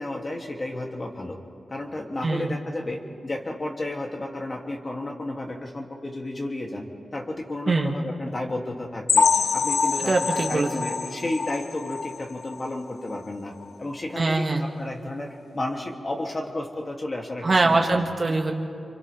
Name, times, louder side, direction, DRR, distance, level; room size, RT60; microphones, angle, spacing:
voice 1, 0.0-1.4 1.7-6.9 7.1-9.3 9.5-13.5 13.8-15.3 15.5-18.0, left 1 dB, 40° left, 0 dB, 2.9 m, -32 dB
voice 2, 2.2-2.5 7.7-7.9 10.0-10.7 14.2-14.6 17.4-18.5, right 3 dB, 50° right, 2 dB, 2.1 m, -23 dB
sound 1, 9.1-12.7 13.1-13.3 13.6-13.7 14.2-14.3, left 5 dB, 70° left, 0.4 m, -25 dB
30.0 x 24.5 x 3.6 m, 2.6 s
cardioid pair, 45°, 0 cm